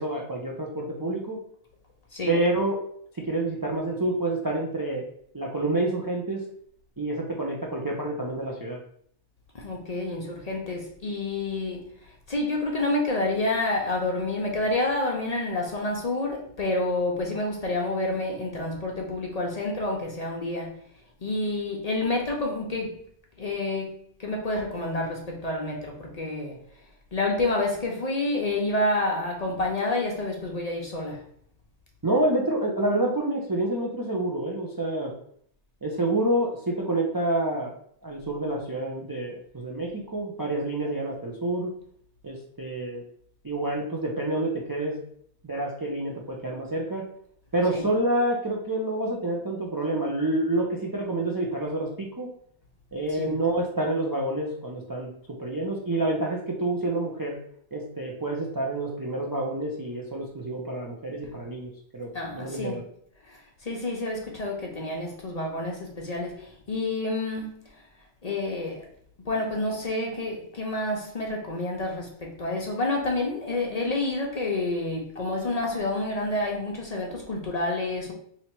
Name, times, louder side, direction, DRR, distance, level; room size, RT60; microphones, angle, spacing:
voice 1, 0.0-1.4 2.3-2.8 3.1-5.1 5.3-6.4 7.0-8.8 32.0-35.1 35.8-37.7 38.0-41.7 42.2-43.0 43.4-45.0 45.4-47.0 47.5-52.3 52.9-55.1 55.4-57.4 57.7-62.8, right 1 dB, 30° right, -2 dB, 0.4 m, -28 dB
voice 2, 9.5-11.8 12.3-20.8 21.2-23.0 23.4-26.6 27.1-31.2 47.7-47.9 53.1-53.3 62.1-62.8 63.3-67.5 68.2-68.9 69.2-78.1, left 2 dB, 45° left, 0 dB, 0.6 m, -29 dB
2.9 x 2.8 x 4.4 m, 0.64 s
omnidirectional pair, 1.1 m